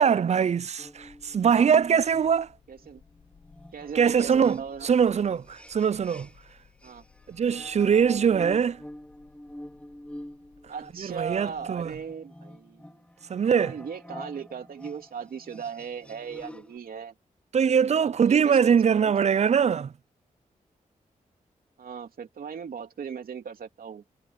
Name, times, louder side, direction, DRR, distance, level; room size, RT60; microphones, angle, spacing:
voice 1, 0.0-2.5 4.0-6.3 7.3-8.8 11.0-11.9 13.3-13.7 17.5-19.9, right 7 dB, 50° right, 0.4 m, -22 dB
sound 1, 0.8-12.2, left 7 dB, 75° left, 7.0 m, -60 dB
sound 2, 0.8-6.5 6.8-16.8, left 1 dB, 10° left, 4.4 m, -47 dB
voice 2, 2.7-3.0 3.7-5.0 6.8-7.0 7.8-8.0 10.7-13.0 13.7-17.1 18.0-19.1 21.8-24.0, right 7 dB, 80° right, 3.2 m, -38 dB
cardioid pair, 55°, 15 cm